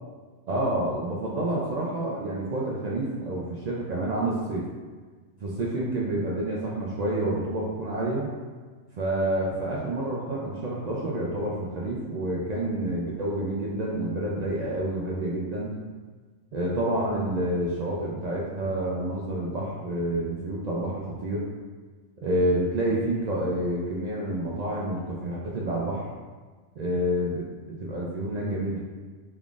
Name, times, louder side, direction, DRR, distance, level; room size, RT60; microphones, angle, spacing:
voice 1, 0.5-4.7 5.4-8.3 9.0-15.7 16.5-21.5 22.2-26.0 26.8-28.8, right 1 dB, 75° right, -5 dB, 0.3 m, -28 dB
3.6 x 3.6 x 2.4 m, 1.4 s
omnidirectional pair, 1.3 m